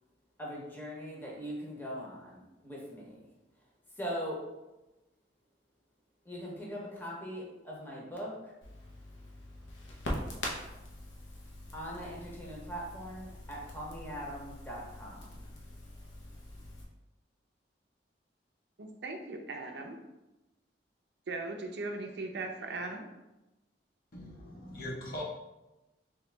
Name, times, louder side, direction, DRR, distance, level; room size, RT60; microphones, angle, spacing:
voice 1, 0.4-3.3 3.9-4.5 6.2-8.5 11.7-15.5, equal, 10° left, -4 dB, 0.8 m, -41 dB
Crackle, 8.6-16.8, left 1 dB, 90° left, 0.8 m, -43 dB
voice 2, 18.8-20.0 21.3-23.0, right 3 dB, 65° right, 3 dB, 0.5 m, -38 dB
voice 3, 24.1-25.2, left 1 dB, 55° left, -1 dB, 0.7 m, -41 dB
3.5 x 2.9 x 3.2 m, 1.0 s
head